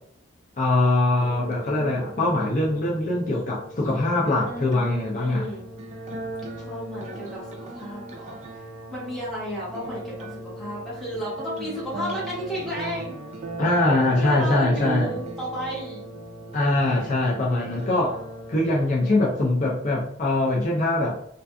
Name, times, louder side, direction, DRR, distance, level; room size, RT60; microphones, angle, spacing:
voice 1, 0.6-5.4 13.6-15.2 16.5-18.2 18.5-21.2, left 2 dB, 45° left, -4 dB, 0.5 m, -22 dB
sound 1, 1.2-20.2, right 2 dB, 35° right, 0.4 m, -38 dB
voice 2, 5.1-5.6 6.6-8.4 8.9-13.2 14.1-16.2 16.7-17.2 17.6-17.9 19.1-19.3, equal, ahead, -7 dB, 1.2 m, -33 dB
2.5 x 2.4 x 2.3 m, 0.69 s
head